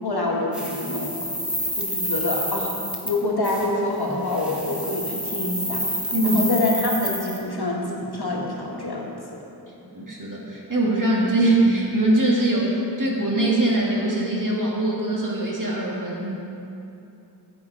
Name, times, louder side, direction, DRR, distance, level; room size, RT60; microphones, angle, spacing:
voice 1, 0.0-1.2 1.8-9.4, left 2 dB, 65° left, -2 dB, 1.6 m, -27 dB
sound 1, 0.5-3.2 3.4-3.7 4.2-7.4, equal, ahead, 1.6 m, -29 dB
voice 2, 9.9-16.3, right 1 dB, 50° right, -4 dB, 2.1 m, -22 dB
10.5 x 8.1 x 4.8 m, 2.8 s
wide cardioid pair, 45°, 40 cm